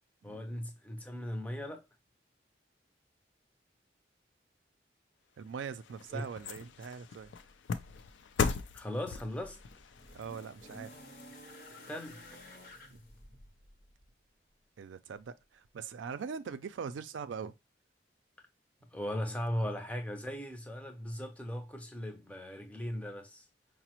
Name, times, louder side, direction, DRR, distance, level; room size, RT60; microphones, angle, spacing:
voice 1, 0.2-1.9 6.1-6.2 8.7-9.6 11.9-12.2 18.9-23.4, equal, 10° left, 0.4 m, -38 dB
sound 1, 5.4-11.9 12.3-12.4, left 5 dB, 85° left, 0.4 m, -39 dB
voice 2, 5.4-7.3 10.1-10.9 12.9-13.0 14.8-17.5, right 6 dB, 90° right, 0.4 m, -42 dB
sound 2, 8.9-14.2 15.2-15.3, left 1 dB, 50° left, 0.6 m, -53 dB
4.8 x 2.0 x 2.8 m
head